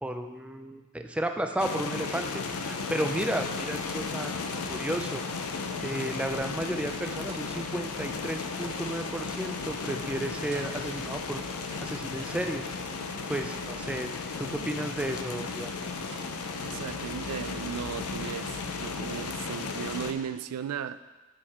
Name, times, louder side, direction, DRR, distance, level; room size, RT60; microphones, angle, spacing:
voice 1, 0.0-4.4 4.7-5.2 5.8-11.4 11.8-12.6 13.3-14.1 14.4-15.7, right 1 dB, 5° right, 5 dB, 0.3 m, -33 dB
sound 1, 1.6-20.1, left 4 dB, 75° left, 0.6 m, -35 dB
sound 2, 6.0-18.2, right 1 dB, 50° right, 1.0 m, -51 dB
voice 2, 16.6-21.0, right 8 dB, 85° right, 13 dB, 0.3 m, -36 dB
9.0 x 4.7 x 4.2 m, 1.2 s
head